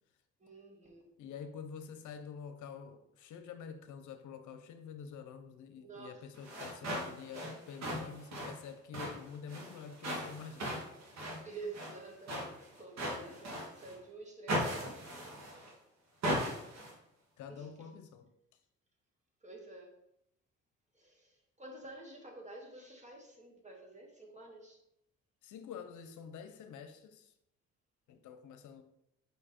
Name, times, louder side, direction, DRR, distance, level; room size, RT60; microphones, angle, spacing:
voice 1, 0.4-1.1 5.7-6.2 11.4-15.1 17.5-17.7 19.4-19.9 20.9-24.8, right 3 dB, 25° right, 1.8 m, -49 dB
voice 2, 1.2-10.8 16.2-16.6 17.4-18.3 25.4-27.3 28.1-28.8, left 7 dB, 75° left, 0.7 m, -47 dB
sound 1, 6.3-14.0 14.5-15.7 16.2-16.9, equal, 60° right, 2.0 m, -39 dB
5.2 x 4.8 x 4.3 m
cardioid pair, 90°, 30 cm